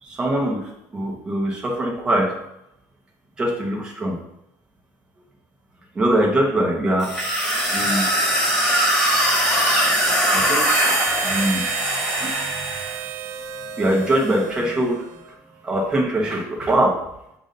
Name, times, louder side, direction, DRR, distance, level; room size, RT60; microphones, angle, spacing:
voice 1, 0.0-2.3 3.4-4.2 5.9-7.1 7.7-8.1 10.3-10.7 11.2-11.6 12.2-12.3 13.8-15.0 15.6-16.9, right 1 dB, 15° right, -1 dB, 1.0 m, -22 dB
sound 1, 7.0-13.0, equal, 5° left, 1.7 m, -21 dB
Harmonica, 10.6-15.4, right 9 dB, 60° right, 0.4 m, -31 dB
7.2 x 2.6 x 5.2 m, 0.82 s
cardioid pair, 165°, 6 cm